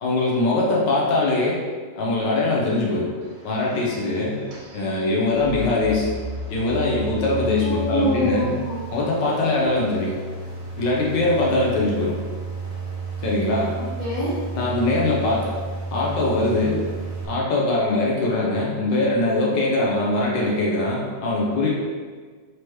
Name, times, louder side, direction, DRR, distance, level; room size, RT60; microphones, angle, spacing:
voice 1, 0.0-1.6 2.0-3.1 3.4-4.4 4.7-6.1 6.5-8.6 8.9-10.1 10.8-12.2 13.2-13.7 14.5-15.5 15.9-16.8 17.2-21.7, left 2 dB, 75° left, -4 dB, 1.5 m, -22 dB
sound 1, 3.2-17.3, right 1 dB, 75° right, 1.6 m, -33 dB
voice 2, 7.6-9.0 13.8-14.4, equal, 30° left, -9 dB, 1.1 m, -25 dB
4.8 x 3.0 x 3.1 m, 1.5 s
omnidirectional pair, 1.9 m